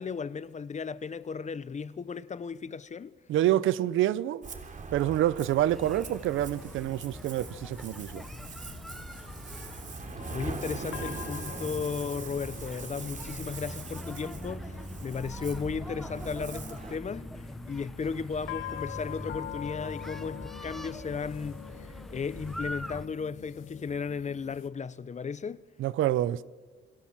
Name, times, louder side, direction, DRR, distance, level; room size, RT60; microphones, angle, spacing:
voice 1, 0.0-3.1 10.3-17.3 17.6-25.7, left 5 dB, 35° left, 1.0 m, -35 dB
voice 2, 3.3-4.4 4.9-8.2 25.8-26.4, right 13 dB, 80° right, 0.8 m, -27 dB
Ocean, 4.4-17.0, right 4 dB, 40° right, 3.2 m, -42 dB
sound 1, 5.6-24.7, left 12 dB, 85° left, 1.1 m, -46 dB
sound 2, 5.7-23.1, equal, ahead, 1.0 m, -43 dB
29.0 x 22.0 x 7.5 m
cardioid pair, 90°, 20 cm